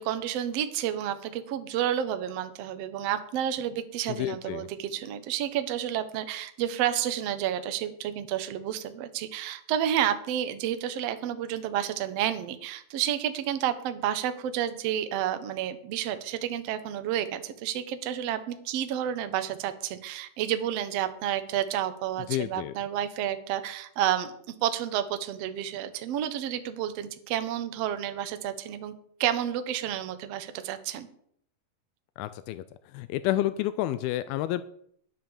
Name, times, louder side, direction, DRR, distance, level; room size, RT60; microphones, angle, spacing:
voice 1, 0.0-31.1, right 10 dB, 90° right, 10 dB, 1.4 m, -30 dB
voice 2, 4.2-4.7 22.3-22.7 32.2-32.6 32.9-34.6, left 14 dB, 85° left, 13 dB, 2.4 m, -29 dB
10.5 x 9.2 x 7.0 m, 0.66 s
omnidirectional pair, 4.3 m